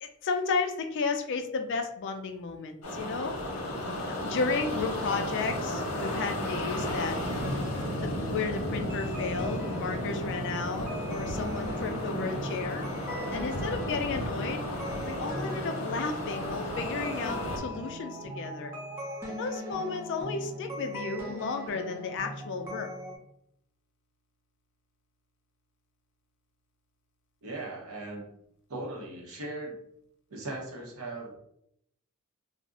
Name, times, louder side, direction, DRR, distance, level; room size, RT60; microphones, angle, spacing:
voice 1, 0.0-3.3 3.9-7.2 8.0-12.9 13.3-14.6 15.0-18.7 19.3-22.9, left 4 dB, 55° left, 6 dB, 0.3 m, -33 dB
sound 1, 2.8-17.6, left 1 dB, 80° left, 0.7 m, -33 dB
sound 2, 7.4-23.1, equal, 10° right, 0.6 m, -40 dB
voice 2, 27.4-28.3 28.7-29.8 30.3-31.4, right 2 dB, 70° right, -1 dB, 0.7 m, -38 dB
2.4 x 2.0 x 3.6 m, 0.76 s
head